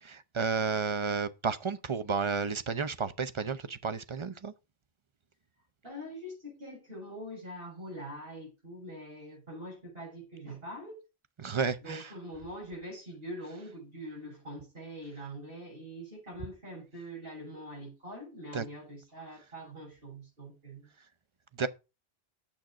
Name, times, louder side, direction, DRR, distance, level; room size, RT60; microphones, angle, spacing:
voice 1, 0.0-4.5 11.4-12.1 18.5-18.6 21.6-21.7, right 5 dB, 35° right, 0.6 m, -32 dB
voice 2, 5.8-11.0 11.8-20.9, equal, 60° right, 7.3 m, -44 dB
9.1 x 7.3 x 5.0 m
omnidirectional pair, 1.1 m